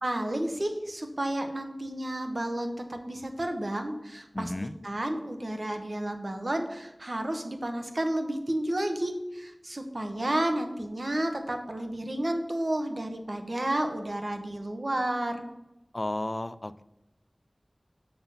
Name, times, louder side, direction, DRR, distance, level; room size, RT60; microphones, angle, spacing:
voice 1, 0.0-4.5 4.8-15.5, right 1 dB, 60° right, 6 dB, 1.0 m, -31 dB
voice 2, 4.3-4.7 15.9-16.8, left 1 dB, 40° left, 14 dB, 0.3 m, -33 dB
6.8 x 5.6 x 5.6 m, 0.93 s
wide cardioid pair, 55°, 0 cm